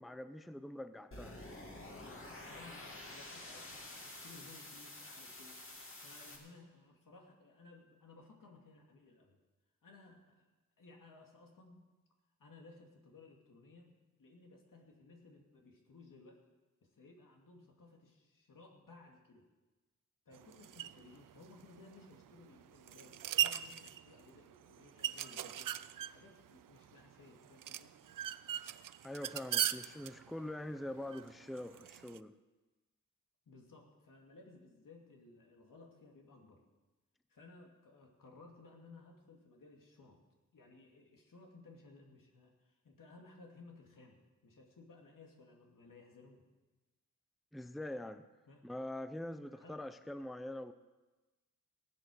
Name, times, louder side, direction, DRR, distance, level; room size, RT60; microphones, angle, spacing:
voice 1, 0.0-1.4 29.0-32.3 47.5-48.2 48.6-50.7, left 1 dB, ahead, 11 dB, 0.5 m, -44 dB
sound 1, 1.1-6.4, left 2 dB, 40° left, 2.5 m, -49 dB
voice 2, 2.3-5.6 6.0-9.4 9.8-10.5 10.8-11.9 12.4-16.4 16.8-19.4 20.3-25.8 26.0-28.0 33.5-36.6 37.3-40.2 40.5-46.4 48.5-48.7 49.6-49.9, left 3 dB, 80° left, 1 dB, 2.5 m, -59 dB
sound 2, 20.3-32.2, right 11 dB, 80° right, 0.5 m, -40 dB
18.5 x 8.2 x 6.4 m, 1.2 s
wide cardioid pair, 100°, 32 cm